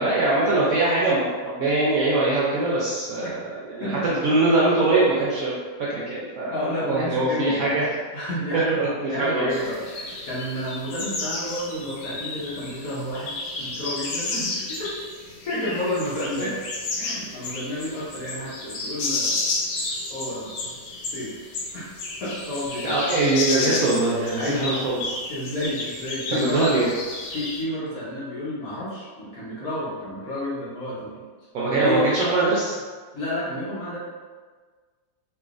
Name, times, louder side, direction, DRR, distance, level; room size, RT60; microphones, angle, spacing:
voice 1, 0.0-5.5 5.9-6.6 6.8-7.9 8.8-9.5 16.4-16.5 22.8-25.2 26.3-26.9 31.5-32.7, right 2 dB, 70° right, -6 dB, 0.8 m, -22 dB
voice 2, 6.5-7.8 8.1-14.9 15.4-16.5 17.0-19.3 20.1-20.7 21.1-21.3 21.7-22.0 22.2-23.1 24.3-24.6 25.3-26.7 27.3-31.2 31.6-32.1 33.1-34.0, equal, 60° left, -8 dB, 1.1 m, -30 dB
sound 1, 9.5-27.6, left 3 dB, 80° left, 1.3 m, -32 dB
3.2 x 2.9 x 2.4 m, 1.5 s
omnidirectional pair, 1.9 m